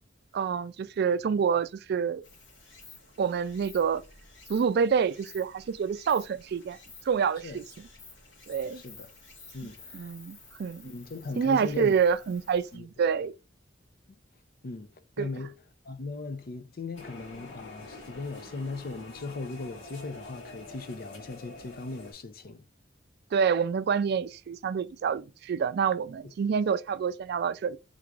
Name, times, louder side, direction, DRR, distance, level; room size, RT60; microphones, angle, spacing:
voice 1, 0.3-2.2 3.2-4.0 4.5-6.8 7.1-7.6 8.5-8.8 9.9-10.9 11.4-13.3 15.2-15.3 23.3-27.8, right 6 dB, 60° right, 0.3 m, -27 dB
Stream, 2.2-12.8, left 3 dB, 70° left, 1.5 m, -52 dB
voice 2, 8.8-9.1 9.5-10.1 10.8-11.9 12.7-12.9 14.6-15.5 15.8-22.6, left 3 dB, 50° left, 0.5 m, -38 dB
sound 1, 16.9-22.1, left 2 dB, 85° left, 1.8 m, -46 dB
3.7 x 2.5 x 4.6 m
head